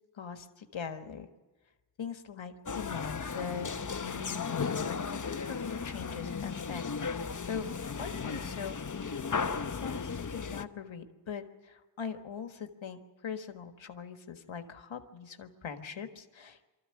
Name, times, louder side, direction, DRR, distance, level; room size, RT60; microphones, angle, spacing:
voice 1, 0.1-1.3 2.0-6.8 7.1-7.7 7.9-9.1 9.4-16.6, left 7 dB, 85° left, 7 dB, 1.6 m, -41 dB
sound 1, 2.7-10.6, left 5 dB, 40° left, 1.0 m, -35 dB
24.5 x 14.0 x 9.8 m, 1.2 s
cardioid pair, 60°, 45 cm